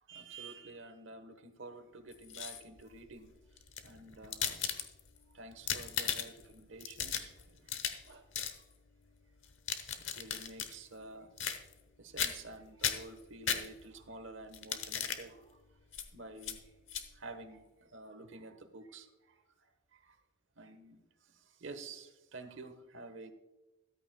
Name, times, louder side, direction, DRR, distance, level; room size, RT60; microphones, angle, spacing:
voice 1, 0.1-3.3 3.8-4.8 5.3-8.2 10.0-11.3 12.0-15.6 16.1-16.6 17.1-19.4 19.9-20.2 20.6-21.0 21.3-23.3, right 3 dB, 70° right, 9 dB, 1.1 m, -50 dB
sound 1, 2.1-2.8 3.6-5.2 5.5-6.5 6.8-8.1 8.3-8.6 9.4-10.7 11.4-11.9 12.2-12.5 12.8-14.0 14.5-15.2 15.9-16.1 16.4-16.6 16.9-17.1, left 8 dB, 70° left, 1.0 m, -36 dB
13.5 x 12.5 x 2.2 m, 1.0 s
head